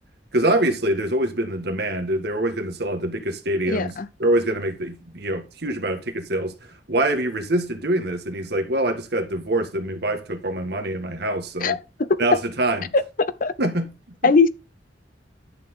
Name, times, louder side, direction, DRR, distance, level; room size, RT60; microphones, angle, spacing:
voice 1, 0.3-6.5 6.9-11.8 12.2-12.9 13.6-13.9 14.2-14.3, right 1 dB, 65° right, 1.7 m, -24 dB
voice 2, 3.7-4.1 11.6-12.2 12.9-13.5 14.2-14.5, left 4 dB, 50° left, 0.7 m, -20 dB
10.5 x 6.7 x 3.7 m
head